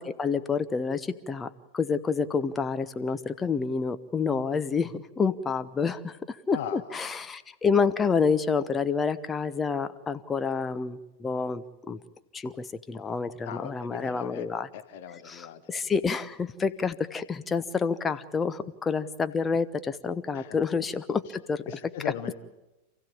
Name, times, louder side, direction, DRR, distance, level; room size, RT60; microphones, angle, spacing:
voice 1, 0.0-12.0 12.3-14.7 15.3-21.6, left 5 dB, 15° left, 11 dB, 1.0 m, -28 dB
voice 2, 6.5-7.1 13.4-14.5 14.7-15.8 20.3-20.6 21.7-22.3, left 9 dB, 50° left, 9 dB, 1.5 m, -39 dB
28.0 x 15.5 x 8.8 m, 1.0 s
figure-of-eight pair, 90°, 0 cm